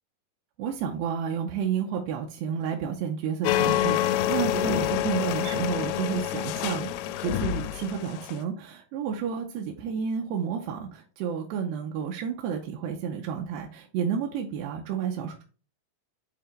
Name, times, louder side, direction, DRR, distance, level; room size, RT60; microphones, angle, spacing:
voice 1, 0.6-15.4, right 7 dB, 85° right, 1 dB, 2.8 m, -31 dB
sound 1, 3.4-8.4, left 12 dB, 85° left, 2.3 m, -27 dB
8.2 x 3.8 x 3.2 m, 0.37 s
omnidirectional pair, 4.9 m